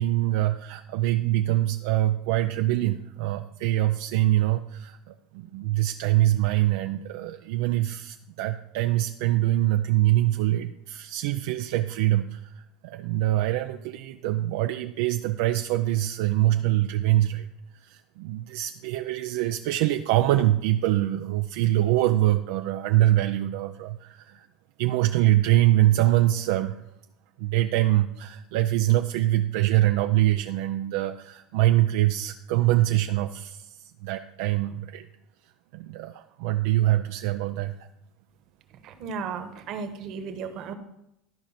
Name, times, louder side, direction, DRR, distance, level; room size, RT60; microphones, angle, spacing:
voice 1, 0.0-17.5 17.7-24.5 24.8-26.8 27.4-35.1 35.7-37.8, right 15 dB, 75° right, 6 dB, 0.5 m, -24 dB
voice 2, 38.8-40.7, right 5 dB, 50° right, 7 dB, 1.3 m, -35 dB
13.0 x 5.1 x 5.9 m, 0.82 s
supercardioid pair, 135°, 0 cm